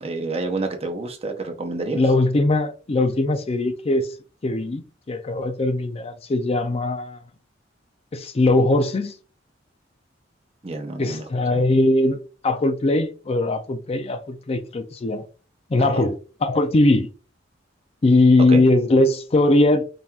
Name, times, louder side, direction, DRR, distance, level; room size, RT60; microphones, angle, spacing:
voice 1, 0.0-2.0 10.6-11.2 11.5-11.6 15.8-16.0 18.5-18.6, right 3 dB, 35° right, 0.7 m, -29 dB
voice 2, 1.9-4.1 4.4-7.2 8.1-9.1 11.0-12.2 12.4-15.2 15.7-16.2 16.4-17.1 18.0-19.8, left 2 dB, 35° left, 0.4 m, -20 dB
5.3 x 2.9 x 2.3 m
head